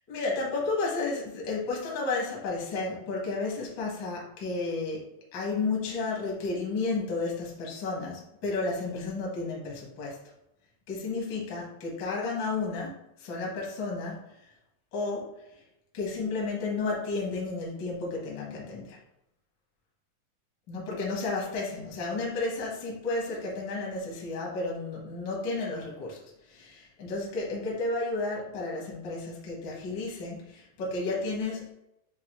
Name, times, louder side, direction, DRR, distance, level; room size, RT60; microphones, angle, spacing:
voice 1, 0.1-5.0 5.3-10.2 10.9-14.2 14.9-15.3 15.9-19.0 20.7-31.7, left 3 dB, 65° left, -3 dB, 1.1 m, -32 dB
7.3 x 2.4 x 2.9 m, 0.83 s
omnidirectional pair, 4.0 m